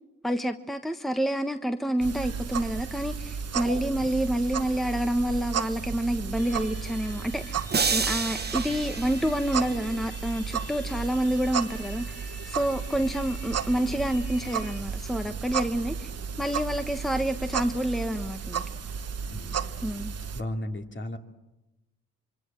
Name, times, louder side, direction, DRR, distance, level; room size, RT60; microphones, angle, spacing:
voice 1, 0.2-7.5 7.9-16.1 16.4-18.6 19.8-20.1, right 1 dB, ahead, 1.2 m, -28 dB
sound 1, 2.0-20.4, right 7 dB, 55° right, 1.2 m, -34 dB
sound 2, 6.3-14.8, left 3 dB, 85° left, 4.3 m, -48 dB
sound 3, 7.7-10.0, right 5 dB, 35° right, 1.2 m, -29 dB
voice 2, 19.2-19.6 20.3-21.2, left 1 dB, 40° left, 2.8 m, -34 dB
26.0 x 24.0 x 7.7 m
supercardioid pair, 60°, 30 cm